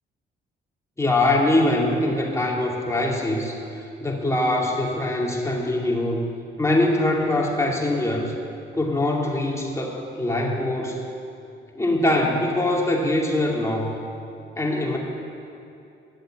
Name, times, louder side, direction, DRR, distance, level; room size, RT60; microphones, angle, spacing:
voice 1, 1.0-3.6 4.0-6.2 6.6-8.3 8.7-11.0 11.7-13.9 14.6-15.0, left 1 dB, 15° left, -1 dB, 2.4 m, -23 dB
13.0 x 7.6 x 9.0 m, 2.7 s
cardioid pair, 90°, 20 cm